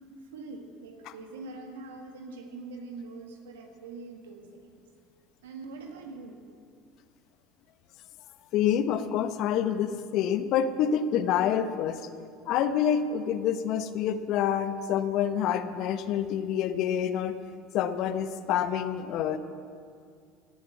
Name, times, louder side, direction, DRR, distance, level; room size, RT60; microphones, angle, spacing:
voice 1, 0.3-4.5 5.4-6.4, right 3 dB, 85° right, 4 dB, 1.7 m, -43 dB
voice 2, 8.5-12.0 12.5-17.3 17.7-19.4, left 9 dB, 60° left, 11 dB, 0.9 m, -27 dB
16.0 x 7.6 x 8.4 m, 2.3 s
hypercardioid pair, 80°, 0 cm